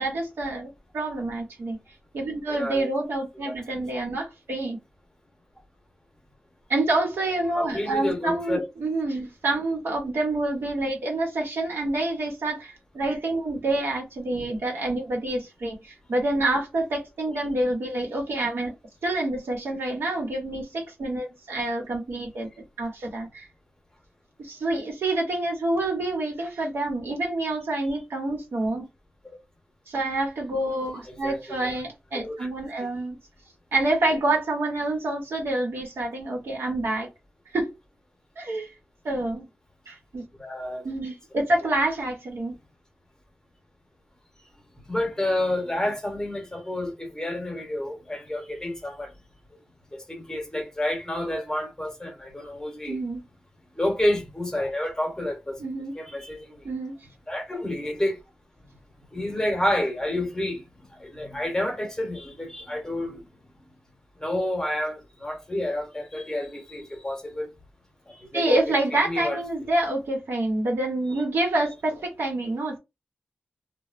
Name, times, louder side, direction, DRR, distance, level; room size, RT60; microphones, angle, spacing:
voice 1, 0.0-1.8 2.1-4.8 6.7-18.7 19.0-22.5 22.8-23.5 24.4-28.9 29.9-33.2 33.7-37.1 37.5-37.7 38.4-38.7 39.0-39.5 39.9-40.3 40.8-42.6 52.9-53.2 55.6-55.9 56.6-57.0 68.3-72.8, right 2 dB, 75° right, 1.0 m, -27 dB
voice 2, 2.5-2.9 3.4-3.5 7.5-8.6 31.1-31.8 32.1-32.5 40.4-40.8 44.9-49.1 50.1-53.0 53.8-55.6 56.0-56.6 57.3-58.2 59.1-60.6 61.0-63.2 64.2-67.5 68.3-68.7 69.0-69.4, left 1 dB, 15° left, 0.9 m, -29 dB
3.0 x 2.2 x 2.5 m
wide cardioid pair, 85°, 4 cm